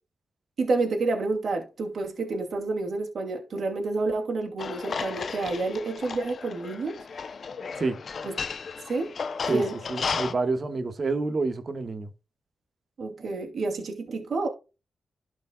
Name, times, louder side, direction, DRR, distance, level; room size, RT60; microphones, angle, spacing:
voice 1, 0.6-7.0 8.2-8.3 8.8-9.1 9.5-9.8 13.0-14.5, right 3 dB, 65° right, 2.6 m, -29 dB
sound 1, 4.6-10.3, left 5 dB, 60° left, 0.6 m, -34 dB
voice 2, 9.9-12.1, right 3 dB, 50° right, 1.5 m, -28 dB
12.0 x 5.2 x 2.3 m
cardioid pair, 60°, 0 cm